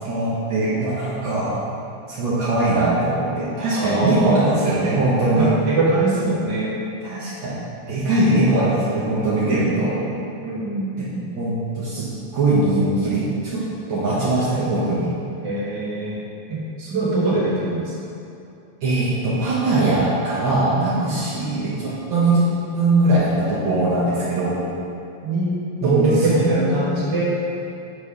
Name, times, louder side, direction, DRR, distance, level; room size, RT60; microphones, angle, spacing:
voice 1, 0.0-1.5 2.1-5.5 7.0-7.6 7.9-9.9 11.0-11.1 11.3-13.6 13.9-15.1 18.8-22.5 22.7-24.6 25.8-26.8, right 2 dB, 65° right, -8 dB, 1.2 m, -21 dB
voice 2, 3.7-4.5 5.3-6.8 9.4-9.9 10.4-11.3 15.4-16.2 16.5-17.9 20.7-21.3 25.2-27.2, right 2 dB, 45° right, -6 dB, 1.7 m, -23 dB
6.4 x 5.4 x 4.9 m, 2.7 s
omnidirectional pair, 3.4 m